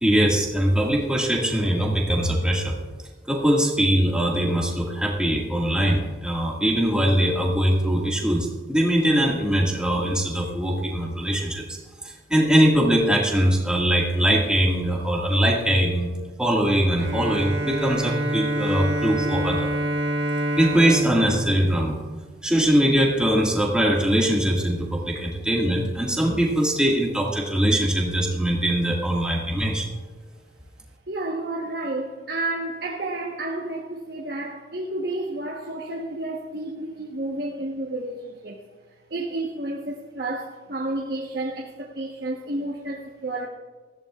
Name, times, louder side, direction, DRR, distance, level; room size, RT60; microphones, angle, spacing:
voice 1, 0.0-2.8 3.3-16.1 16.4-19.7 20.6-22.0 22.4-29.9, equal, 5° right, -3 dB, 1.9 m, -22 dB
Bowed string instrument, 17.0-22.7, right 1 dB, 75° right, 1.3 m, -27 dB
voice 2, 31.1-38.6 39.1-43.5, right 2 dB, 55° right, -1 dB, 1.2 m, -31 dB
19.5 x 14.5 x 2.4 m, 1.4 s
head